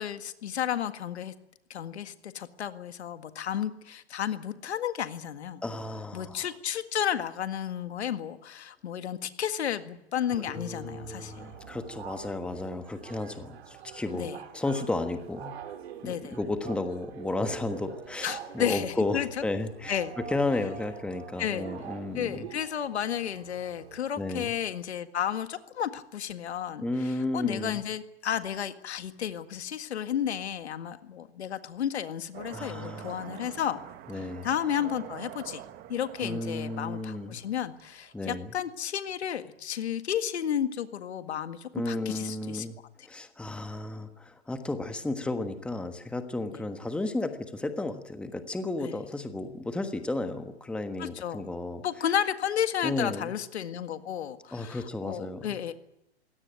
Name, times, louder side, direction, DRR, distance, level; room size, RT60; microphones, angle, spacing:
voice 1, 0.0-1.3 1.7-5.6 6.1-11.5 14.1-14.4 16.0-16.4 18.2-19.3 19.9-20.1 21.4-21.7 22.2-26.9 27.3-33.8 34.4-35.6 35.9-42.7 48.8-48.9 51.0-51.4 51.8-55.7, left 9 dB, 75° left, 9 dB, 1.9 m, -32 dB
voice 2, 5.6-6.5 10.3-14.3 14.5-15.6 16.0-22.5 24.2-24.5 26.8-27.8 32.5-33.3 34.1-34.5 36.2-37.4 38.1-38.5 41.7-42.8 43.0-51.8 52.8-53.3 54.5-55.7, left 2 dB, 5° left, 8 dB, 1.3 m, -33 dB
sound 1, 10.3-24.0, right 9 dB, 65° right, 2.8 m, -45 dB
sound 2, 32.3-38.3, right 12 dB, 25° right, 1.2 m, -46 dB
22.0 x 17.5 x 9.2 m, 0.85 s
hypercardioid pair, 130°, 34 cm